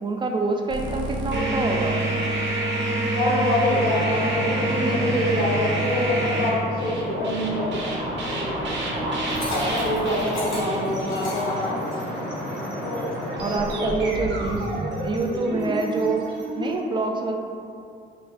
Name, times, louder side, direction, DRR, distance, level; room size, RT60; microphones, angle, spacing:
voice 1, 0.0-2.0 10.5-11.0 13.4-16.3 16.6-17.3, right 3 dB, 25° right, 2 dB, 0.3 m, -26 dB
sound 1, 0.7-16.7, right 2 dB, 65° right, 0.7 m, -28 dB
voice 2, 3.1-7.9 8.3-8.6 9.5-11.8 12.8-13.0 13.4-14.6, left 1 dB, 45° left, -6 dB, 1.1 m, -26 dB
sound 2, 3.7-14.3, equal, 5° left, 1.3 m, -33 dB
Liquid, 9.1-12.2, left 1 dB, 70° left, 1.5 m, -33 dB
4.1 x 2.4 x 2.5 m, 2.4 s
cardioid pair, 90°, 20 cm